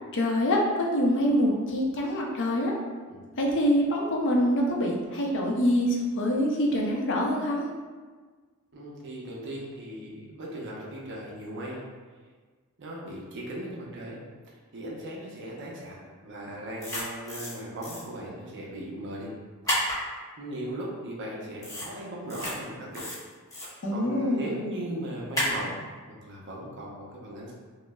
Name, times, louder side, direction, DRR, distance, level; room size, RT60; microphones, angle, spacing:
voice 1, 0.1-2.7 3.4-7.7 23.8-24.4, equal, 55° left, -1 dB, 0.6 m, -25 dB
voice 2, 8.7-11.9 12.8-14.2 14.5-19.4 19.7-20.0 20.4-23.1 23.6-25.7 26.1-27.5, right 1 dB, 55° right, -4 dB, 0.7 m, -38 dB
sound 1, 16.8-17.5 17.8-18.0 19.7-20.0 21.6-21.9 22.2-22.5 22.9-23.7 25.3-25.6, equal, 15° left, 1.0 m, -30 dB
5.1 x 2.0 x 2.3 m, 1.5 s
head